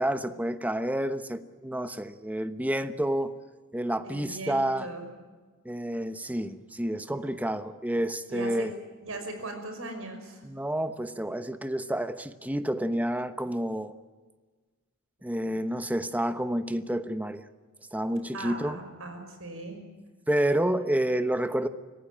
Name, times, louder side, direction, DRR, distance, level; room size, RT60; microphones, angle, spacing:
voice 1, 0.0-3.3 3.7-4.9 5.6-8.7 10.4-13.9 15.2-17.4 17.9-18.8 20.3-21.7, right 1 dB, 5° right, 11 dB, 1.0 m, -29 dB
voice 2, 4.0-5.0 8.3-8.7 9.0-10.4 18.3-19.8, right 2 dB, 75° right, 6 dB, 5.6 m, -38 dB
25.5 x 17.0 x 8.8 m, 1.4 s
head